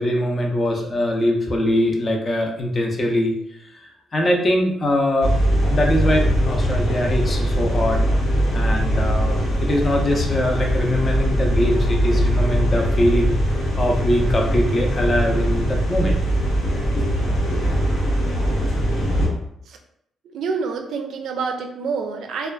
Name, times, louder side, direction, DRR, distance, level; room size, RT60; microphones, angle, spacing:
voice 1, 0.0-3.3 3.7-5.3 5.7-8.1 8.5-13.3 13.8-16.2 17.0-17.6, left 1 dB, 35° left, 1 dB, 0.5 m, -22 dB
sound 1, 5.2-19.3, equal, 85° left, 0.9 m, -21 dB
voice 2, 20.3-22.5, right 5 dB, 75° right, 4 dB, 0.4 m, -27 dB
2.4 x 2.3 x 2.3 m, 0.72 s
cardioid pair, 90°, 0 cm